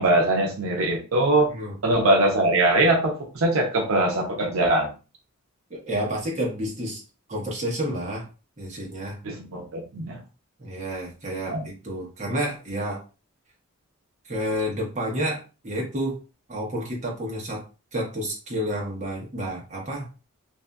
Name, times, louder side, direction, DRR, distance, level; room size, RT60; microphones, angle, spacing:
voice 1, 0.0-1.5 1.8-4.9 9.2-10.2 11.5-11.6, right 2 dB, 75° right, 1 dB, 0.6 m, -22 dB
voice 2, 5.7-7.0 7.3-8.2 8.6-9.2 10.6-13.0 14.3-16.2 16.5-17.6 17.9-20.1, equal, 35° right, -2 dB, 0.9 m, -30 dB
2.6 x 2.4 x 2.2 m, 0.33 s
head